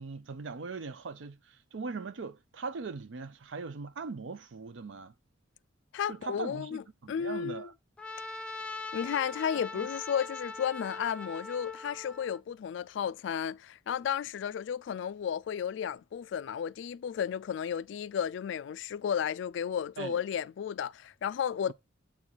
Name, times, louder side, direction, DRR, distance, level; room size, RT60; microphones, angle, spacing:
voice 1, 0.0-5.1 6.1-7.7 9.5-9.9 20.0-20.2 21.7-21.8, right 4 dB, 70° right, 0.5 m, -40 dB
voice 2, 5.9-6.8 7.1-7.7 8.9-21.7, left 8 dB, 65° left, 0.3 m, -33 dB
Trumpet, 8.0-12.4, left 3 dB, 5° left, 0.5 m, -41 dB
7.3 x 4.5 x 3.9 m
head